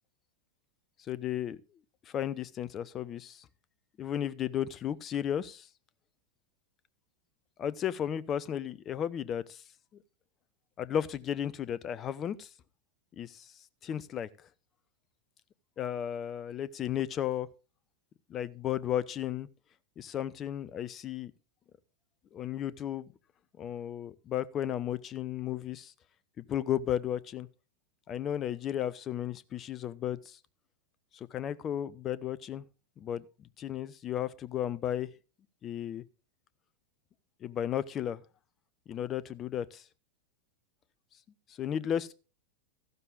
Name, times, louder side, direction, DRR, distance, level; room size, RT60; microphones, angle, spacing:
voice 1, 1.1-1.6 2.1-3.5 4.0-5.7 7.6-9.6 10.8-12.5 13.2-13.5 13.8-14.3 15.8-17.5 18.3-19.5 20.0-21.3 22.3-23.1 23.6-25.9 26.4-27.5 28.1-30.4 31.1-32.6 33.0-35.1 35.6-36.0 37.4-38.2 38.9-39.8 41.6-42.1, left 10 dB, 30° left, 0.6 m, -34 dB
14.5 x 12.0 x 2.4 m
figure-of-eight pair, 90°, 0 cm